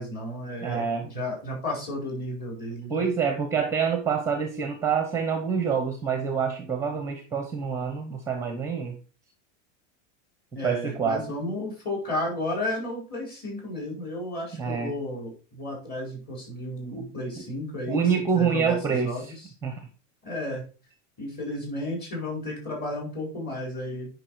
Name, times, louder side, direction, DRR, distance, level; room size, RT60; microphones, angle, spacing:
voice 1, 0.0-3.0 10.5-19.5 20.2-20.6 21.2-24.1, left 1 dB, 25° left, -1 dB, 4.6 m, -33 dB
voice 2, 0.6-1.1 2.9-8.9 10.6-11.2 14.6-14.9 16.9-17.0 17.4-17.5 17.9-19.3 19.6-19.9, right 6 dB, 10° right, 6 dB, 0.9 m, -26 dB
9.9 x 5.4 x 4.7 m, 0.35 s
supercardioid pair, 155°, 37 cm